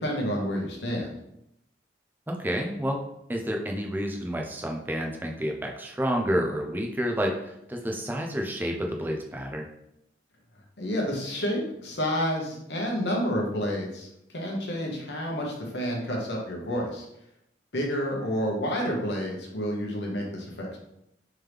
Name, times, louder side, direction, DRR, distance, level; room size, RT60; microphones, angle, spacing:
voice 1, 0.0-1.1 10.8-17.0 17.7-20.8, equal, 75° left, -1 dB, 1.0 m, -29 dB
voice 2, 2.3-3.0 3.3-9.7, equal, 10° right, 1 dB, 0.4 m, -29 dB
3.6 x 3.1 x 3.3 m, 0.80 s
head